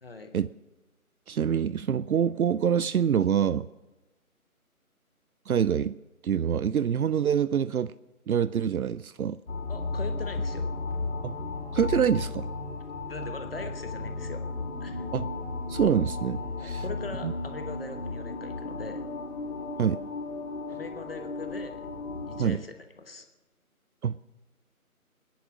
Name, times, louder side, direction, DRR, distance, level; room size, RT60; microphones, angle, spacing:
voice 1, 0.0-0.4 9.7-10.7 13.1-14.4 14.8-15.1 16.6-19.0 20.7-21.8 22.3-23.3, left 3 dB, 40° left, 7 dB, 1.2 m, -41 dB
voice 2, 1.3-3.7 5.5-6.0 6.2-7.9 8.3-9.4 11.2-11.3 11.7-12.5 15.1-15.3 15.7-16.8 17.2-17.3 19.8-20.0 22.4-22.6 24.0-24.2, right 8 dB, 75° right, 17 dB, 0.5 m, -25 dB
sound 1, 9.5-22.4, left 3 dB, 55° left, 3.2 m, -34 dB
22.0 x 10.5 x 6.2 m, 1.1 s
figure-of-eight pair, 160°, 44 cm